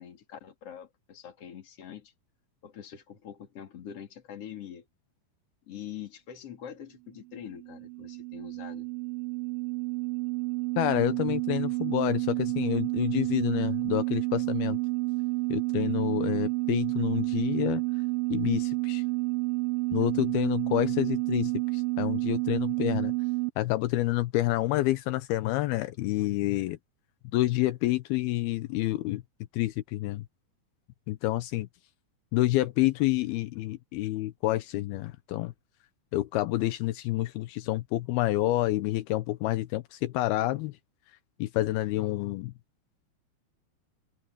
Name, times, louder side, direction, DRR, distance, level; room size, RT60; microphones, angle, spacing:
voice 1, 0.0-2.1 2.6-4.9 5.7-8.9, left 9 dB, 40° left, 3.3 m, -44 dB
sound 1, 7.3-23.5, right 25 dB, 80° right, 2.3 m, -30 dB
voice 2, 10.8-14.8 15.5-17.8 18.3-19.0 19.9-23.1 23.6-26.8 27.3-29.2 29.5-30.3 31.1-31.7 32.3-35.5 36.1-40.7 41.4-42.5, left 16 dB, 80° left, 2.7 m, -28 dB
open air
omnidirectional pair, 4.4 m